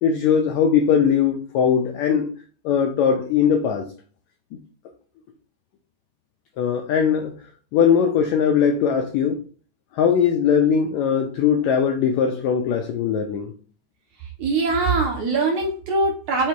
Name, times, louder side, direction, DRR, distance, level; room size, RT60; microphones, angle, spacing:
voice 1, 0.0-2.3 2.6-3.9 6.6-7.3 7.7-9.4 10.0-13.5, left 7 dB, 85° left, 4 dB, 1.6 m, -20 dB
voice 2, 14.4-16.5, right 3 dB, 75° right, 0 dB, 1.4 m, -22 dB
5.5 x 2.2 x 4.5 m, 0.42 s
omnidirectional pair, 3.7 m